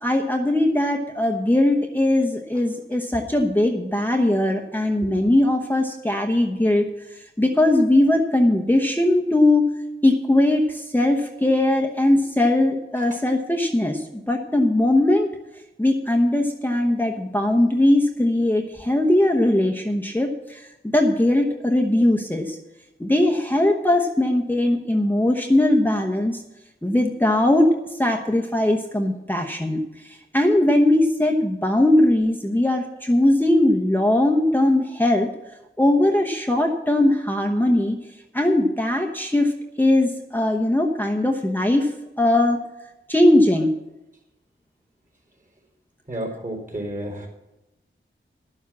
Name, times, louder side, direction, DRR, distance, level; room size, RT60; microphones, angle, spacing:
voice 1, 0.0-9.7 10.0-15.3 15.8-22.6 23.0-26.4 26.8-35.3 35.8-38.0 38.3-42.6 43.1-43.7, left 1 dB, 10° left, 0 dB, 1.0 m, -20 dB
voice 2, 46.1-47.3, right 1 dB, 40° right, 1 dB, 4.2 m, -31 dB
11.0 x 7.2 x 7.3 m, 0.97 s
wide cardioid pair, 50°, 21 cm